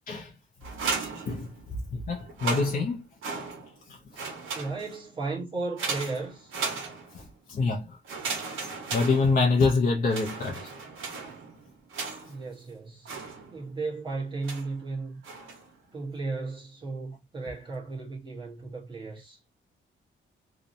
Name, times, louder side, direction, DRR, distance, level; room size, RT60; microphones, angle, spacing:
sound 1, 0.6-1.8 2.2-3.8 4.1-5.1 5.8-7.3 8.0-9.7 10.1-12.5 13.0-13.8 14.4-14.8 15.2-15.7, right 4 dB, 70° right, 1.0 m, -36 dB
voice 1, 1.9-3.1 3.9-4.0 7.1-8.0 8.9-10.7, left 4 dB, 40° left, 0.5 m, -26 dB
voice 2, 4.5-6.5 12.3-13.1 13.5-15.2 15.9-19.4, right 3 dB, 25° right, 0.9 m, -35 dB
2.7 x 2.1 x 2.5 m
wide cardioid pair, 165°, 21 cm